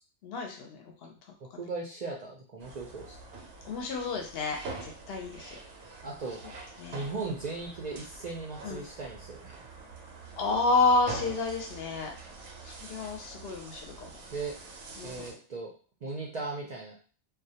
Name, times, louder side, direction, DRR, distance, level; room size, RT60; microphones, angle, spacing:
voice 1, 0.2-1.1 3.6-5.5 6.8-7.1 8.6-8.8 10.4-12.1 12.6-14.1 15.0-15.2, left 3 dB, 65° left, 2 dB, 0.7 m, -30 dB
voice 2, 1.4-3.2 6.0-6.4 6.9-9.7 14.3-14.5 15.0-15.7 16.0-16.9, right 3 dB, 55° right, -3 dB, 0.5 m, -37 dB
sound 1, 2.6-15.3, right 3 dB, 85° right, 0.9 m, -45 dB
2.3 x 2.1 x 2.7 m, 0.40 s
omnidirectional pair, 1.1 m